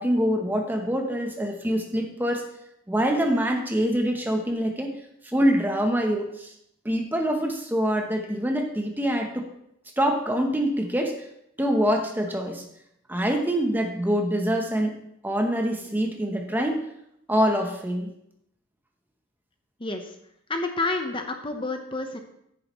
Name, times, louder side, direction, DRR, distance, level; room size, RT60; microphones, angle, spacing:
voice 1, 0.0-2.4 2.9-4.9 5.2-6.5 6.8-9.5 10.0-11.2 11.6-12.6 13.1-16.8 17.3-18.1, equal, 10° right, 3 dB, 0.8 m, -25 dB
voice 2, 19.8-20.1 20.5-22.2, left 2 dB, 25° left, 5 dB, 0.8 m, -29 dB
10.5 x 9.4 x 3.1 m, 0.77 s
head